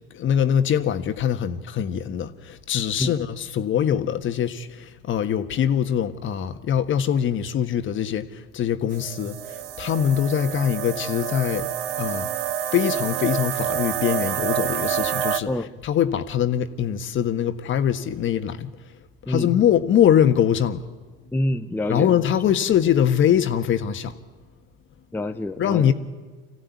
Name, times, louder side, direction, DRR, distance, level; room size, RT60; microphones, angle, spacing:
voice 1, 0.1-11.7 12.0-12.3 12.7-15.5 15.8-18.7 19.3-20.8 21.9-24.1 25.6-25.9, left 9 dB, 40° left, 1.5 m, -23 dB
sound 1, 8.9-15.4, right 10 dB, 85° right, 0.8 m, -28 dB
voice 2, 21.3-22.1 25.1-25.9, left 1 dB, 5° left, 0.7 m, -26 dB
25.0 x 15.5 x 9.7 m
hypercardioid pair, 80°, 29 cm